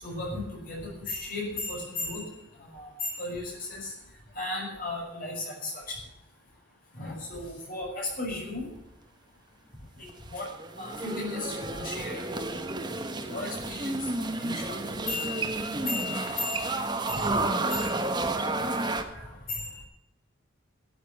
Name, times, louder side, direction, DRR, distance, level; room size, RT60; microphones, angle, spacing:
voice 1, 0.0-2.2 2.7-3.9 4.4-5.7 7.0-8.7 10.3-10.5 10.8-12.6 13.3-16.8 17.1-17.2 17.7-18.0 19.5-19.8, left 2 dB, 40° left, -1 dB, 6.2 m, -35 dB
sound 1, 10.1-19.0, right 2 dB, 20° right, 1.2 m, -31 dB
voice 2, 18.3-19.3, right 1 dB, 5° right, -8 dB, 6.8 m, -56 dB
13.5 x 8.4 x 8.4 m, 0.89 s
head